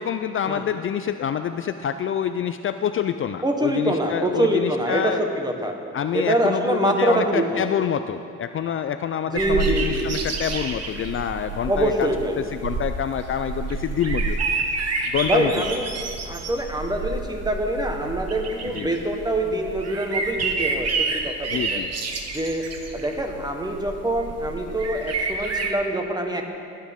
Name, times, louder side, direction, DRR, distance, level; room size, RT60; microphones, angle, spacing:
voice 1, 0.0-5.2 5.9-12.1 12.5-14.4 15.1-15.6 18.6-18.9 21.5-21.9, left 8 dB, 45° left, 9 dB, 0.4 m, -26 dB
voice 2, 3.4-5.7 6.1-7.6 9.3-10.1 11.7-12.4 15.3-15.9 16.3-21.8 22.3-22.6 22.9-26.5, right 1 dB, 15° right, 3 dB, 1.3 m, -25 dB
sound 1, 9.4-25.7, right 4 dB, 55° right, 1.2 m, -29 dB
16.5 x 8.7 x 3.6 m, 2.4 s
cardioid pair, 90°, 30 cm